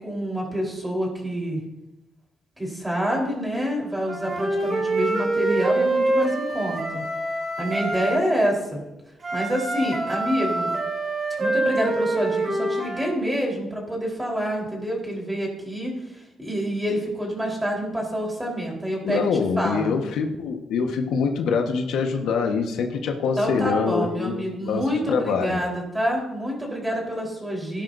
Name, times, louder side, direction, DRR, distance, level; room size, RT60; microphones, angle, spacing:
voice 1, 0.0-1.6 2.6-7.0 7.6-8.8 9.3-10.7 11.4-19.3 19.6-20.0 23.4-27.8, equal, 10° right, -1 dB, 4.0 m, -27 dB
Wind instrument woodwind instrument, 4.1-8.2 9.2-13.1, right 2 dB, 35° right, 3.0 m, -25 dB
voice 2, 19.0-24.8 25.1-25.6, left 5 dB, 85° left, 3 dB, 1.3 m, -24 dB
17.5 x 10.5 x 2.7 m, 0.95 s
cardioid pair, 115°, 0 cm